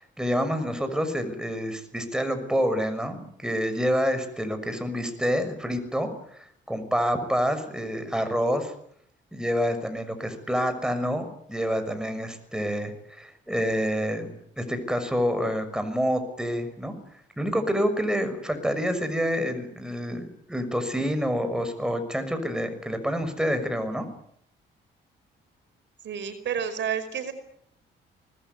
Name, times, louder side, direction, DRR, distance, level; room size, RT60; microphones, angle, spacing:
voice 1, 0.0-8.7 9.3-14.3 14.6-16.9 17.4-24.1, equal, 5° right, 8 dB, 6.2 m, -27 dB
voice 2, 26.0-27.3, right 8 dB, 65° right, 10 dB, 5.0 m, -30 dB
25.0 x 20.0 x 9.5 m, 0.68 s
cardioid pair, 90°, 20 cm